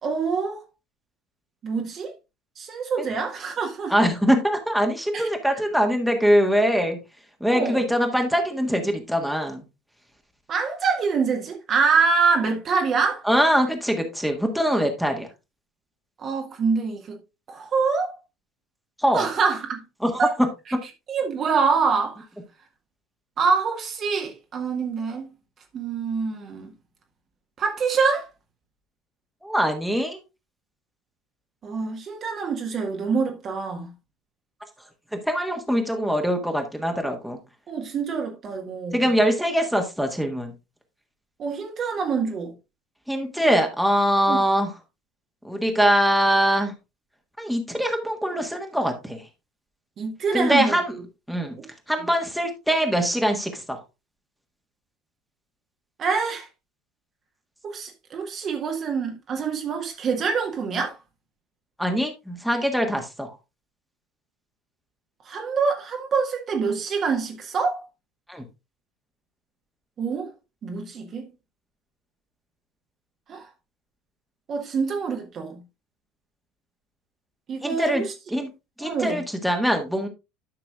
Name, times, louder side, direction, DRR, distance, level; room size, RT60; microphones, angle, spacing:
voice 1, 0.0-0.6 1.6-2.1 2.6-3.9 5.1-5.3 7.5-7.8 10.5-13.2 16.2-17.2 17.5-18.1 19.1-19.8 20.2-20.3 21.1-22.2 23.4-25.3 25.7-26.7 27.6-28.3 31.6-33.9 37.7-39.0 41.4-42.5 44.3-44.4 50.0-50.8 51.4-51.7 56.0-56.5 57.6-61.0 65.2-67.8 70.0-70.3 70.6-71.2 73.3-73.5 74.5-75.6 77.5-78.1 78.8-79.2, right 5 dB, 40° right, 1.5 m, -25 dB
voice 2, 3.9-7.0 7.4-9.6 13.2-15.3 19.0-19.3 20.0-20.5 29.4-30.2 35.1-37.4 38.9-40.5 43.1-44.7 45.4-46.7 47.4-49.2 50.3-50.9 51.3-51.5 51.9-53.8 61.8-63.3 68.3-68.4 77.6-78.0 78.3-78.5 78.8-80.1, equal, ahead, 1.6 m, -23 dB
11.5 x 5.9 x 2.4 m
figure-of-eight pair, 70°, 0 cm